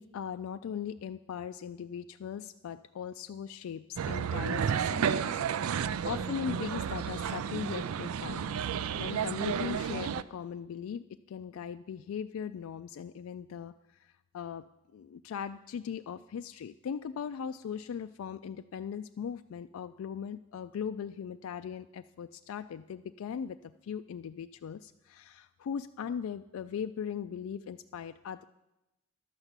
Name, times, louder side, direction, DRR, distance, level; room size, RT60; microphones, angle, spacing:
voice 1, 0.0-8.5 9.0-13.7 14.0-14.7 14.9-28.4, left 7 dB, 75° left, 9 dB, 0.3 m, -39 dB
sound 1, 4.0-10.2, right 7 dB, 85° right, 0.4 m, -32 dB
11.5 x 5.9 x 8.1 m, 0.96 s
head